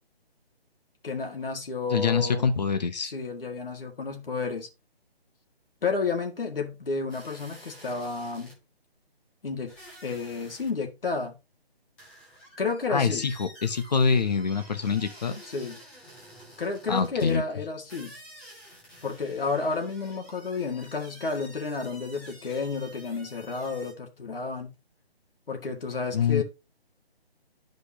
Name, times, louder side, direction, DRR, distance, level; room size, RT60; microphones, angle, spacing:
voice 1, 1.0-2.5 3.0-4.7 5.8-8.5 9.4-9.7 10.0-11.3 12.6-13.2 15.4-15.8 16.6-18.2 19.0-24.7 25.5-26.4, left 4 dB, 60° left, 2.0 m, -31 dB
voice 2, 1.9-3.1 12.9-15.4 16.9-17.4 26.1-26.4, left 5 dB, 40° left, 0.9 m, -25 dB
sound 1, 7.1-8.6 9.7-10.8 11.0-11.1 12.0-17.4 17.9-23.9, right 1 dB, 5° left, 0.6 m, -50 dB
11.0 x 5.2 x 2.8 m
figure-of-eight pair, 150°, 31 cm